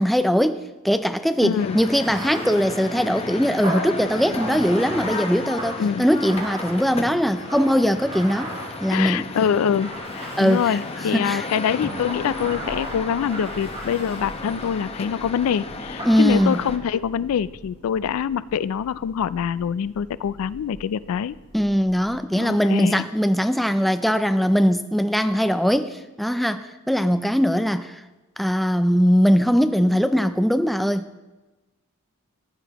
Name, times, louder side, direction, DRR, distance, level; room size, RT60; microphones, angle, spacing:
voice 1, 0.0-8.5 8.8-9.3 10.4-10.8 11.1-11.5 16.1-16.6 21.5-28.0 28.4-31.0, equal, ahead, 9 dB, 0.3 m, -21 dB
voice 2, 1.4-1.8 5.8-6.1 8.9-21.4 22.3-23.0, left 8 dB, 80° left, 17 dB, 0.3 m, -25 dB
sound 1, 1.6-16.8, left 3 dB, 30° left, 0.7 m, -34 dB
Bathtub (filling or washing), 1.9-9.3 9.8-11.1 11.7-14.8 16.0-17.0, right 1 dB, 30° right, 1.9 m, -36 dB
Thunder, 11.7-22.6, equal, 60° right, 4.2 m, -45 dB
15.0 x 10.0 x 2.9 m, 1.1 s
head